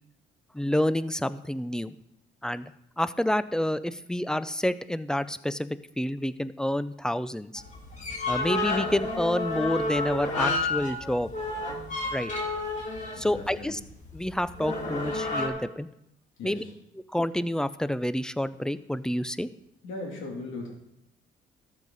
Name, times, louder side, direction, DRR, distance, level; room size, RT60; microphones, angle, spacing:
voice 1, 0.5-1.9 2.4-2.7 3.0-5.7 6.0-7.6 8.3-11.3 12.1-12.3 13.2-13.8 14.1-15.9 16.4-16.6 17.1-19.5, left 1 dB, 5° left, 14 dB, 0.5 m, -28 dB
sound 1, 7.6-15.5, left 2 dB, 35° left, 2.8 m, -31 dB
voice 2, 13.2-13.8 16.4-16.7 19.8-20.7, left 2 dB, 85° left, -1 dB, 3.1 m, -38 dB
13.0 x 7.5 x 4.1 m, 0.80 s
cardioid pair, 90°, 20 cm